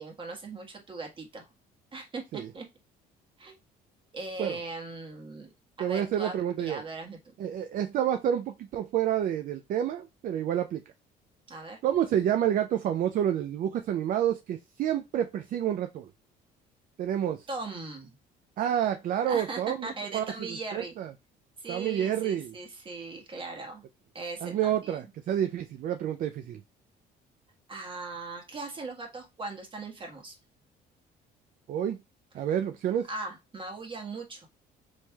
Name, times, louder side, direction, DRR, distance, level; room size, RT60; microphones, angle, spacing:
voice 1, 0.0-1.4 1.9-2.6 3.4-3.6 4.1-5.5 5.8-7.2 11.5-11.8 17.5-18.1 19.3-20.9 21.6-23.8 24.1-25.1 27.7-30.4 33.1-34.5, right 3 dB, 30° right, 1.4 m, -39 dB
voice 2, 5.8-6.8 7.4-10.8 11.8-16.1 17.0-17.5 18.6-20.3 20.7-21.1 21.7-22.5 24.4-26.6 31.7-32.0 32.3-33.1, right 10 dB, 55° right, 0.4 m, -29 dB
4.4 x 3.1 x 2.3 m
cardioid pair, 110°, 17 cm